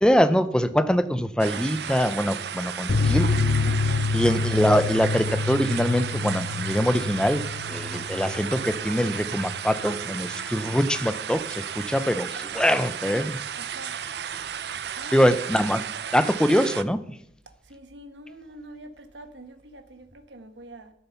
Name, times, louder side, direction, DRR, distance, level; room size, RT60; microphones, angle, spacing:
voice 1, 0.0-3.3 4.1-7.4 7.7-13.4 15.1-15.8 16.1-17.0, equal, 5° left, 0.5 m, -23 dB
sound 1, 1.4-16.8, right 8 dB, 70° right, 0.5 m, -34 dB
sound 2, 2.9-10.0 10.2-10.4 10.7-10.8, left 4 dB, 55° left, 0.5 m, -27 dB
voice 2, 3.6-4.1 13.6-13.9 15.0-15.3 17.6-20.9, right 1 dB, 85° right, 1.2 m, -44 dB
12.5 x 6.9 x 5.7 m
head